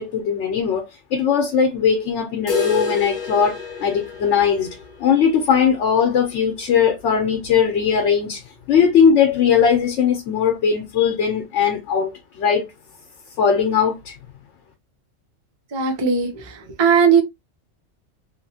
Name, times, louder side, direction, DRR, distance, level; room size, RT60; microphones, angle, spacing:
voice 1, 0.0-4.7 5.0-8.4 8.7-12.7 13.4-14.1, left 7 dB, 75° left, 1.0 m, -19 dB
sound 1, 2.5-8.3 8.6-8.7 9.0-9.1 9.6-9.7 10.6-10.7, left 5 dB, 45° left, 0.8 m, -32 dB
voice 2, 15.7-17.2, right 6 dB, 30° right, 0.5 m, -18 dB
2.8 x 2.7 x 2.6 m
omnidirectional pair, 1.3 m